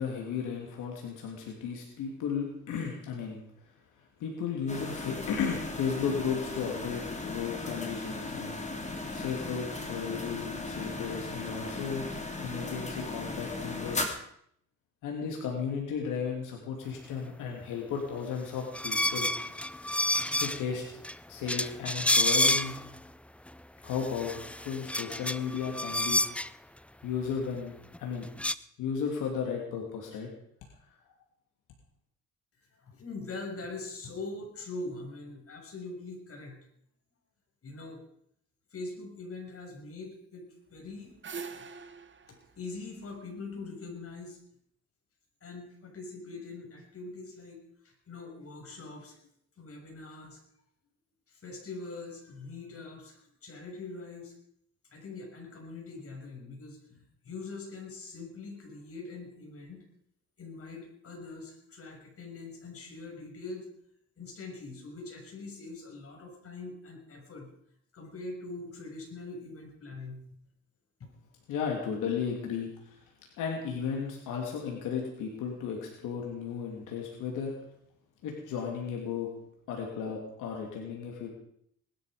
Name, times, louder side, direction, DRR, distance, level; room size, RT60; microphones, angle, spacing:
voice 1, 0.0-8.6 9.1-12.1 12.4-14.0 15.0-19.3 20.4-20.8 21.3-22.8 23.8-26.2 27.0-27.7 28.0-28.3 28.8-30.3 71.5-73.1 73.4-77.5 78.2-79.3 79.7-81.3, left 6 dB, 90° left, 0 dB, 3.1 m, -34 dB
sound 1, 4.7-14.1, left 2 dB, 25° left, 3.1 m, -37 dB
sound 2, 18.7-20.7 21.0-21.1 21.5-23.0 23.5-23.6 23.9-26.5 27.9-28.0 28.2-28.5, left 1 dB, 5° left, 0.6 m, -29 dB
voice 2, 32.8-36.6 37.6-38.0 38.7-41.1 41.6-41.7 42.3-44.4 45.4-47.6 47.8-49.3 49.6-50.4 51.3-54.3 54.9-59.8 60.4-63.6 64.2-67.5 67.9-70.2, left 3 dB, 50° left, 1 dB, 6.8 m, -43 dB
sound 3, 40.7-43.9, right 5 dB, 40° right, 1.4 m, -44 dB
20.0 x 12.0 x 5.2 m, 0.69 s
cardioid pair, 90°, 30 cm